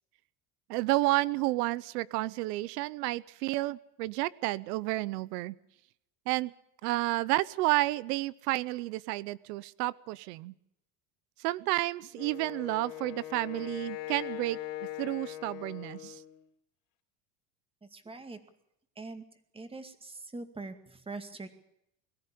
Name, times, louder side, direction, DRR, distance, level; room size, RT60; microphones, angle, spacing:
voice 1, 0.7-5.5 6.3-6.5 6.8-10.5 11.4-14.6 15.0-16.2, right 19 dB, 90° right, 19 dB, 0.9 m, -31 dB
Wind instrument woodwind instrument, 12.1-16.4, left 15 dB, 85° left, 3.8 m, -41 dB
voice 2, 17.8-18.4 19.0-19.2 19.5-21.5, right 3 dB, 10° right, 8 dB, 2.2 m, -43 dB
23.0 x 14.0 x 8.6 m, 0.78 s
cardioid pair, 140°, 46 cm